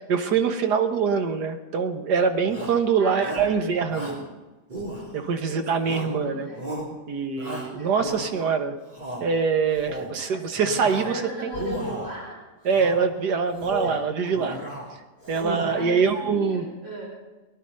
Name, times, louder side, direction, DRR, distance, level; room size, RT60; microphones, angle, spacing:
voice 1, 0.1-4.2 5.1-6.5 7.1-8.8 9.2-11.5 12.7-14.6 15.3-16.6, right 5 dB, 85° right, 7 dB, 1.8 m, -24 dB
Shout, 2.5-2.8 3.2-3.6 3.9-4.3 4.7-5.4 5.8-6.2 6.6-6.9 7.4-8.5 8.9-9.3 9.7-10.2 10.6-11.2 11.5-12.2 12.7-13.1 13.5-14.0 14.3-14.9 15.2-15.9, right 1 dB, 25° right, 3.2 m, -35 dB
voice 2, 3.0-3.6 5.4-6.8 7.7-8.3 10.3-10.6 10.9-12.4 13.6-14.5 15.7-17.1, right 1 dB, 45° right, -4 dB, 4.4 m, -37 dB
19.0 x 11.0 x 5.4 m, 1.1 s
omnidirectional pair, 1.7 m